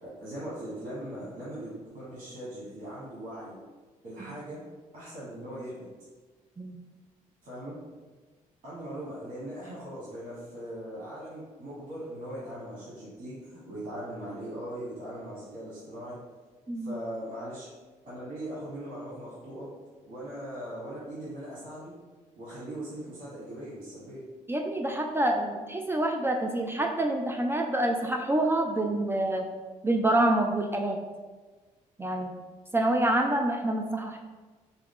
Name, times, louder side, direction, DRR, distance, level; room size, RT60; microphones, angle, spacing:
voice 1, 0.0-3.6 4.0-4.6 4.9-5.9 7.4-7.8 8.6-16.2 16.8-17.7 18.0-19.7 20.0-21.9 22.3-24.2, right 1 dB, 70° right, -8 dB, 1.4 m, -40 dB
voice 2, 24.5-29.4 29.8-31.0 32.0-32.3 32.7-34.2, right 1 dB, 15° right, 3 dB, 0.4 m, -27 dB
4.6 x 2.3 x 3.6 m, 1.3 s
cardioid pair, 90°, 14 cm